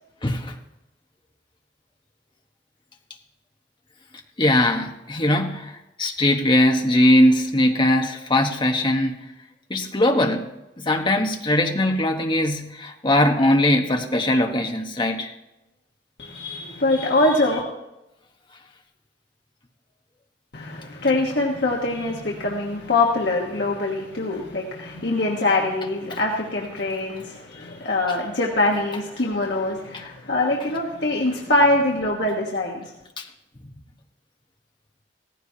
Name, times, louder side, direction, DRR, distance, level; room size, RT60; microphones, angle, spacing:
voice 1, 0.2-0.5 4.4-9.2 9.7-10.5 10.8-15.3 33.2-33.3, left 1 dB, 25° left, 3 dB, 1.1 m, -20 dB
voice 2, 16.2-17.6 20.5-32.9, left 2 dB, 65° left, -2 dB, 1.3 m, -23 dB
16.5 x 15.0 x 2.8 m, 0.95 s
head